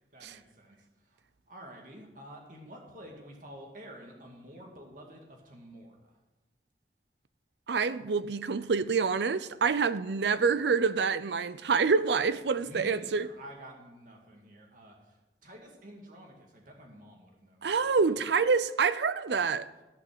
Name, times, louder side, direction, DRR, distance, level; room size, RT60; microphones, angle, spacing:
voice 1, 0.1-0.8 1.1-1.2 1.5-6.1 12.3-18.2 19.8-19.9, right 1 dB, 50° right, 2.3 m, -50 dB
voice 2, 7.7-13.3 17.6-19.7, right 5 dB, 75° right, 0.5 m, -27 dB
14.5 x 5.9 x 6.8 m
head